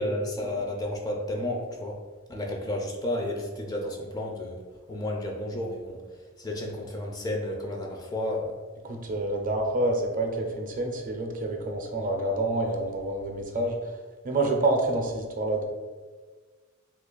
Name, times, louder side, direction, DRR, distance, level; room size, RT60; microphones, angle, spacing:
voice 1, 0.0-2.0 2.3-4.6 4.9-6.0 6.4-8.6, left 1 dB, 20° left, 0 dB, 0.4 m, -32 dB
voice 2, 8.8-13.8 14.2-15.6, right 2 dB, 40° right, 2 dB, 0.5 m, -27 dB
2.9 x 2.4 x 3.8 m, 1.4 s
head